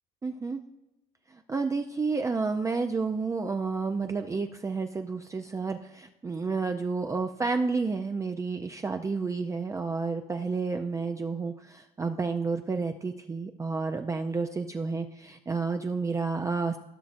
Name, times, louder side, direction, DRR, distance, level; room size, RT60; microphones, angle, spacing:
voice 1, 0.2-0.6 1.5-16.8, right 4 dB, 20° right, 5 dB, 0.4 m, -30 dB
15.5 x 6.0 x 2.5 m, 0.96 s
cardioid pair, 110°, 17 cm